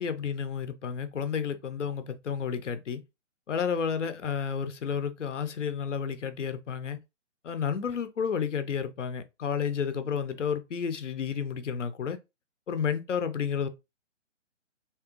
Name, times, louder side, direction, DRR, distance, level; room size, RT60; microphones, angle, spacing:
voice 1, 0.0-3.0 3.5-7.0 7.4-12.2 12.7-13.7, left 7 dB, 70° left, 0.8 m, -31 dB
3.6 x 3.2 x 3.0 m
hypercardioid pair, 170°, 38 cm